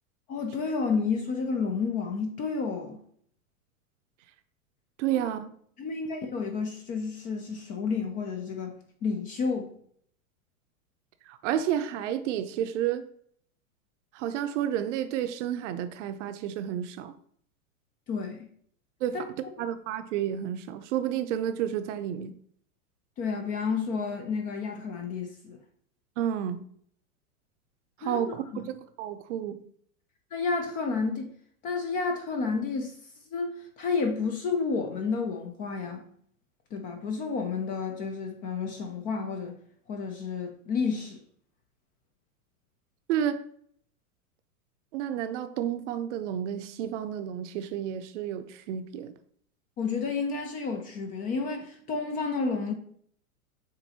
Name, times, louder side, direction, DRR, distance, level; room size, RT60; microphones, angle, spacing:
voice 1, 0.3-3.0 5.1-5.2 5.8-8.7 9.0-9.7 18.1-18.5 19.1-19.2 23.2-25.6 28.0-28.7 30.3-31.3 31.6-33.0 33.3-36.1 36.7-39.5 39.9-41.2 49.8-52.7, left 4 dB, 20° left, 0.3 m, -31 dB
voice 2, 5.0-5.5 11.3-13.0 14.1-17.1 19.0-19.2 19.6-22.3 26.2-26.6 28.0-29.6 43.1-43.4 44.9-49.1, right 10 dB, 55° right, 0.6 m, -31 dB
7.3 x 2.6 x 2.8 m
hypercardioid pair, 110°, 43 cm